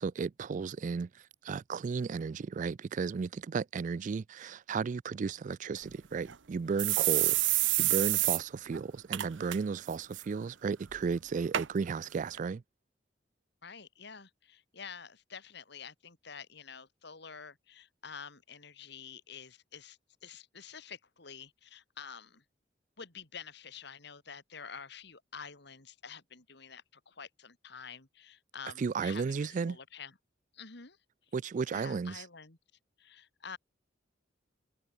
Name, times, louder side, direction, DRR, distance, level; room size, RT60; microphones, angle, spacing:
voice 1, 0.0-12.6 28.8-29.8 31.3-32.2, right 5 dB, 40° right, 0.3 m, -34 dB
sound 1, 5.8-5.9 6.3-6.4 6.8-8.4 8.7-8.8 9.1-9.6 9.9-10.2 10.9-11.0 11.5-11.7 12.4-12.5, right 16 dB, 80° right, 0.9 m, -28 dB
voice 2, 13.6-22.4 23.0-30.1 30.5-31.0 31.7-32.6 33.0-33.6, left 6 dB, 60° left, 2.8 m, -48 dB
head